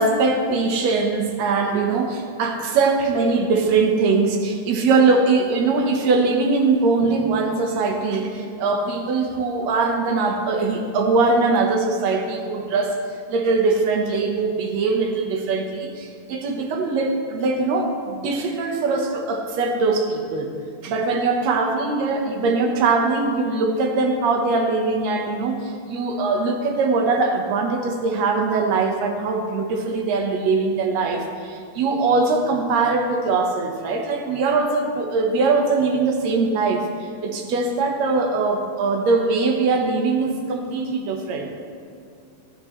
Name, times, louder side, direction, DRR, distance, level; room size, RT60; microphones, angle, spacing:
voice 1, 0.0-13.0 13.3-20.5 20.8-41.5, right 3 dB, 65° right, 3 dB, 2.2 m, -21 dB
17.5 x 10.5 x 3.2 m, 2.4 s
omnidirectional pair, 3.7 m